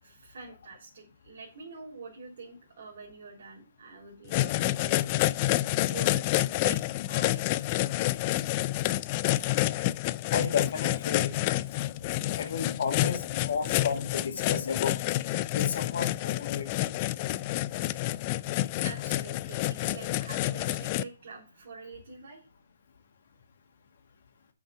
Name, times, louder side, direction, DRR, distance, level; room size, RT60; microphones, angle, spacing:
voice 1, 0.0-5.2 5.9-6.3 6.6-7.6 18.5-22.4, right 4 dB, 60° right, 3.2 m, -46 dB
sound 1, 4.3-21.0, left 16 dB, 30° left, 0.3 m, -29 dB
voice 2, 10.3-11.5 12.3-14.9 15.5-16.7, left 6 dB, 65° left, 1.7 m, -32 dB
7.3 x 5.8 x 5.6 m
hypercardioid pair, 160°, 0 cm